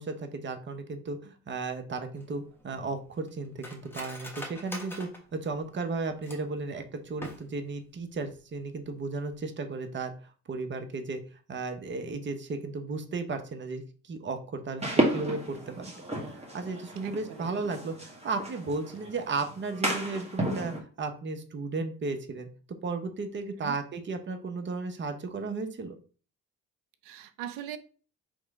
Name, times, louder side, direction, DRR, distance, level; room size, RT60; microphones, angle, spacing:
voice 1, 0.0-10.1 10.5-11.2 11.5-22.5 22.8-25.9, right 3 dB, 35° right, 0.9 m, -35 dB
Cutlery silverware, 2.2-6.6 7.1-7.8 8.1-8.2 8.5-8.9 9.2-9.4, left 1 dB, 5° left, 1.3 m, -44 dB
sound 1, 14.8-20.8, right 1 dB, 20° right, 1.6 m, -32 dB
voice 2, 17.0-17.5 23.6-23.7 27.0-27.8, right 11 dB, 90° right, 0.6 m, -40 dB
3.6 x 3.1 x 4.8 m
supercardioid pair, 70°, 32 cm